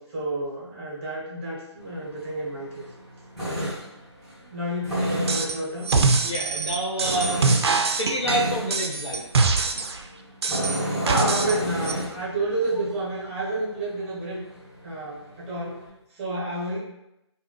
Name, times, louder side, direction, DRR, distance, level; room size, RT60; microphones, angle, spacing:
voice 1, 0.0-2.9 3.5-3.8 4.4-5.9 10.7-14.4 14.8-15.9 16.1-16.8, right 1 dB, 25° right, -5 dB, 1.0 m, -30 dB
Tools, 1.8-15.9, equal, ahead, 1.2 m, -33 dB
sound 1, 5.3-5.6 5.8-10.0 10.4-11.6 11.8-11.9, right 4 dB, 60° right, 0.4 m, -23 dB
voice 2, 6.2-9.2 16.7-16.8, right 1 dB, 75° left, -3 dB, 1.1 m, -29 dB
3.3 x 2.3 x 3.2 m, 0.88 s
figure-of-eight pair, 145°, 15 cm